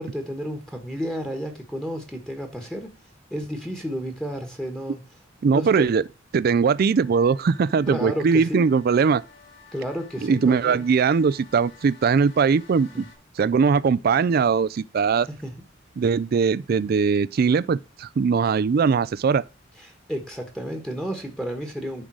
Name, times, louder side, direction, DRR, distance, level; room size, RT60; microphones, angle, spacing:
voice 1, 0.0-2.9 3.3-5.0 5.5-5.9 7.9-8.6 9.7-10.9 12.9-13.1 15.3-15.5 19.8-22.0, equal, 5° left, 1.3 m, -31 dB
voice 2, 5.4-6.0 6.3-9.2 10.2-13.0 13.4-15.3 16.0-19.4, right 5 dB, 50° right, 0.3 m, -20 dB
sound 1, 6.7-13.2, left 4 dB, 70° left, 5.2 m, -52 dB
10.0 x 3.8 x 6.1 m
head